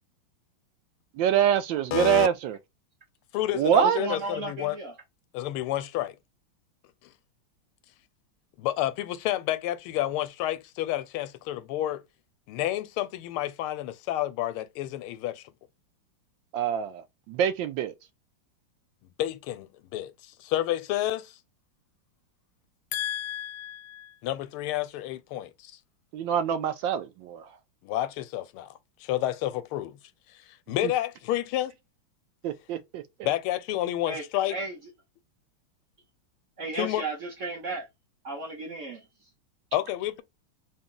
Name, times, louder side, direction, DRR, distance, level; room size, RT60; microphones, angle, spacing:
voice 1, 1.2-2.6 3.5-4.0 16.5-17.9 26.1-27.5 32.4-33.0, right 9 dB, 75° right, 1.2 m, -25 dB
voice 2, 1.9-2.3 3.3-4.8 5.3-6.2 7.0-7.1 8.6-12.0 12.5-15.4 19.2-21.4 22.9-25.8 27.8-30.0 30.3-31.7 33.2-34.6 36.8-37.0 39.7-40.2, left 13 dB, 85° left, 1.5 m, -30 dB
voice 3, 3.8-5.0 34.1-34.2 34.5-34.8 36.6-37.9 38.2-39.3, right 2 dB, 50° right, 0.9 m, -34 dB
3.8 x 2.3 x 3.8 m
omnidirectional pair, 2.3 m